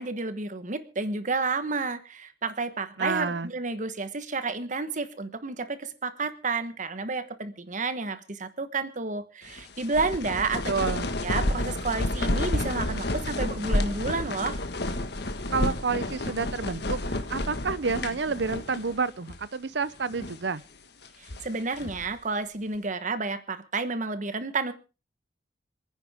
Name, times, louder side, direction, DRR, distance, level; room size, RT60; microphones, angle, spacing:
voice 1, 0.0-10.7 11.2-14.6 21.2-24.7, right 3 dB, 45° right, 12 dB, 1.2 m, -31 dB
voice 2, 3.0-3.5 10.7-11.1 15.5-20.6, right 4 dB, 70° right, 17 dB, 0.7 m, -29 dB
sound 1, 9.5-19.0 19.3-19.4 20.0-20.5 21.0-22.1, left 1 dB, 65° left, 1.6 m, -30 dB
27.0 x 9.8 x 3.6 m, 0.32 s
head